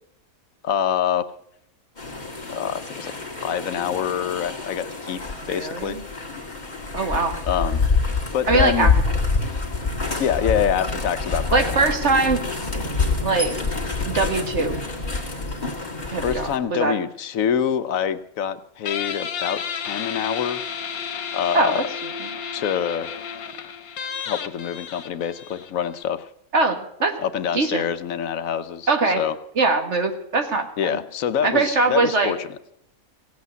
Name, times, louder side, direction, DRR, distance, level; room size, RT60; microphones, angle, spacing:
voice 1, 0.6-1.3 2.5-3.1 3.4-5.2 5.5-6.0 7.5-7.8 8.3-8.9 10.2-11.9 16.2-20.6 21.3-21.9 22.5-23.1 24.3-26.3 27.2-29.4 30.8-32.5, left 8 dB, 75° left, 13 dB, 1.1 m, -25 dB
sound 1, 2.0-16.6, left 4 dB, 30° left, 2.2 m, -26 dB
voice 2, 5.4-6.0 6.9-7.4 8.5-8.9 11.5-12.4 13.2-13.5 14.1-14.8 16.1-16.9 21.5-22.1 26.5-27.2 27.5-27.8 28.9-29.2 29.6-31.0 31.4-32.3, right 3 dB, 55° right, 6 dB, 1.8 m, -22 dB
Guitar, 18.9-26.0, left 7 dB, 90° left, 1.4 m, -32 dB
16.5 x 8.4 x 8.1 m, 0.73 s
omnidirectional pair, 1.5 m